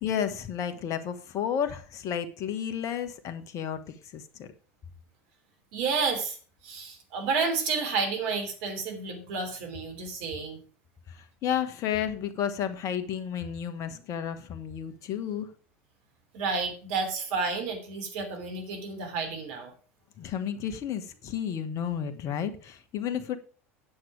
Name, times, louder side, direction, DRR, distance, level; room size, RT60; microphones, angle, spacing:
voice 1, 0.0-4.5 11.1-15.5 20.2-23.4, left 9 dB, 45° left, 10 dB, 1.4 m, -32 dB
voice 2, 5.7-6.4 6.6-10.6 16.3-19.7, right 4 dB, 60° right, 5 dB, 3.1 m, -30 dB
9.5 x 7.8 x 4.8 m, 0.39 s
hypercardioid pair, 80°, 8 cm